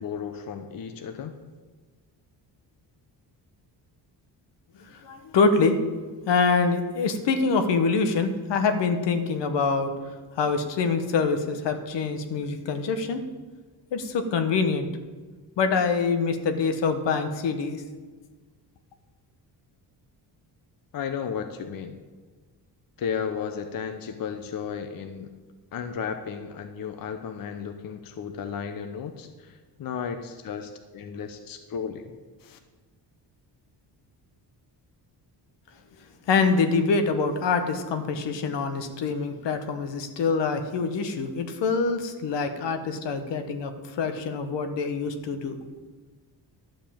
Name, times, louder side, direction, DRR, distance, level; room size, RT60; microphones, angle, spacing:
voice 1, 0.0-1.3 20.9-21.9 23.0-25.3 25.7-32.1 32.4-32.6, left 7 dB, 55° left, 7 dB, 0.9 m, -34 dB
voice 2, 4.8-5.8 6.3-13.2 13.9-14.9 15.6-17.8 36.3-45.6, left 4 dB, 80° left, 7 dB, 1.3 m, -25 dB
12.0 x 5.5 x 8.7 m, 1.4 s
cardioid pair, 145°, 42 cm